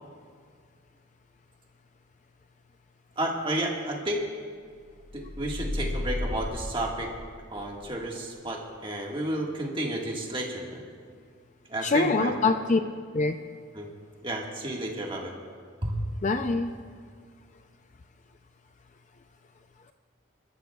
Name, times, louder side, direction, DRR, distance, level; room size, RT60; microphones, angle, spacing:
voice 1, 3.2-4.2 5.1-7.1 7.5-10.8 11.7-12.3 13.7-13.9 14.2-15.3 15.8-16.0, right 1 dB, 25° right, -1 dB, 1.7 m, -31 dB
sound 1, 5.0-7.7, left 1 dB, 60° left, 2.6 m, -33 dB
voice 2, 11.8-12.8 13.1-13.4 16.2-16.7, left 3 dB, 35° left, 8 dB, 0.4 m, -24 dB
26.5 x 13.0 x 2.4 m, 2.1 s
head